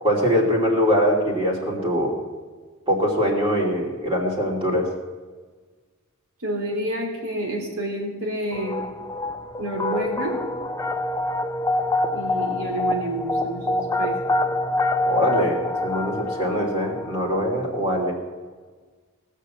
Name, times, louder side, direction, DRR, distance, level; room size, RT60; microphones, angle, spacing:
voice 1, 0.0-2.1 2.9-4.9 15.1-18.1, equal, 25° right, -3 dB, 2.8 m, -22 dB
voice 2, 6.4-8.8 9.6-10.4 12.1-14.2, right 1 dB, 65° right, 0 dB, 3.6 m, -29 dB
sound 1, 8.5-17.5, left 2 dB, 15° left, 0.4 m, -26 dB
19.0 x 6.6 x 7.3 m, 1.4 s
head